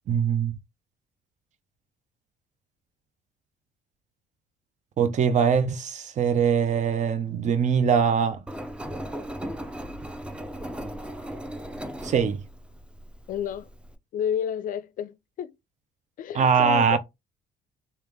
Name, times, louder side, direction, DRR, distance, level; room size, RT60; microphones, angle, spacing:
voice 1, 0.1-0.5 5.0-8.4 12.0-12.4 16.3-17.0, right 6 dB, 45° right, 0.7 m, -22 dB
Engine, 8.5-13.9, equal, 5° right, 0.4 m, -37 dB
voice 2, 13.3-13.7 14.1-15.5 16.2-17.0, left 9 dB, 55° left, 0.4 m, -31 dB
3.3 x 2.9 x 3.4 m
cardioid pair, 110°, 17 cm